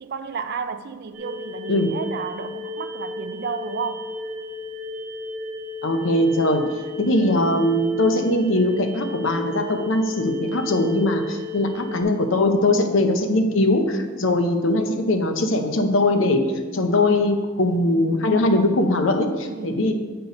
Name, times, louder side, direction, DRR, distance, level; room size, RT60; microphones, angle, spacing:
voice 1, 0.0-4.1 16.0-16.5 19.4-19.9, right 5 dB, 50° right, 0.4 m, -32 dB
sound 1, 1.1-12.0, left 2 dB, 35° right, 1.0 m, -34 dB
voice 2, 5.8-6.7 7.0-19.9, left 1 dB, 65° left, 0.8 m, -21 dB
7.9 x 4.5 x 5.2 m
head